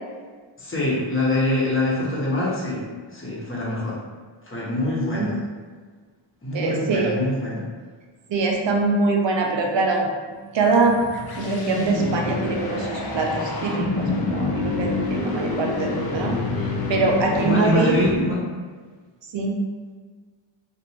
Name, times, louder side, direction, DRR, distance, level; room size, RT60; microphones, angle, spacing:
voice 1, 0.6-2.8 3.1-4.0 4.5-5.4 6.4-7.6 17.4-18.4, left 1 dB, 25° left, -6 dB, 1.1 m, -24 dB
voice 2, 6.5-7.2 8.3-11.0 11.4-18.0 19.3-19.6, right 3 dB, 60° right, 1 dB, 0.6 m, -23 dB
sound 1, 10.7-18.5, left 3 dB, 50° left, 0.6 m, -27 dB
2.9 x 2.6 x 2.8 m, 1.5 s
cardioid pair, 60°, 49 cm